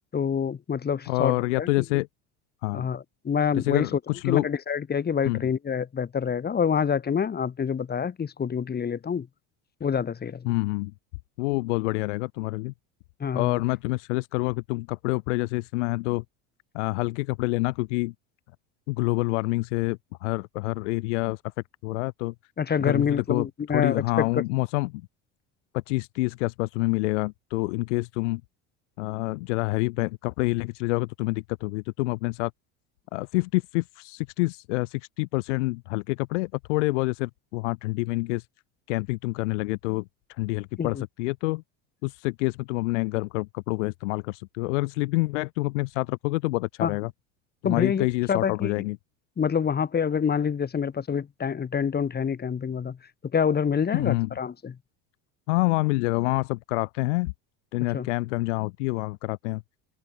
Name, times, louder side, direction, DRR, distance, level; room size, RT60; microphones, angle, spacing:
voice 1, 0.1-1.7 2.7-3.9 4.2-9.3 9.8-10.5 13.2-13.6 22.6-24.3 40.8-41.0 46.8-47.0 47.6-48.8 49.4-53.0 53.3-54.8 57.9-58.1, left 7 dB, 25° left, 3.4 m, -27 dB
voice 2, 1.1-2.1 2.6-2.9 3.6-4.5 5.2-5.5 10.4-10.9 11.4-12.7 13.3-16.2 16.7-18.1 18.9-21.4 21.8-22.3 22.8-23.5 23.7-25.0 25.7-28.4 29.0-32.5 33.1-38.5 38.9-41.6 42.0-47.1 47.6-49.0 53.9-54.3 55.5-57.3 57.7-59.6, left 24 dB, 80° left, 7.9 m, -27 dB
open air
supercardioid pair, 110°, 35 cm